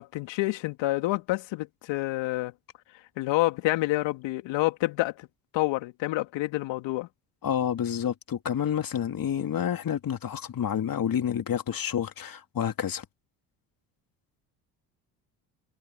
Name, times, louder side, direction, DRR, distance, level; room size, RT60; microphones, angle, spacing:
voice 1, 0.0-2.5 3.2-5.3 5.5-7.1, left 18 dB, 70° left, 3.0 m, -28 dB
voice 2, 7.4-13.0, left 9 dB, 45° left, 3.1 m, -29 dB
hypercardioid pair, 60°, 46 cm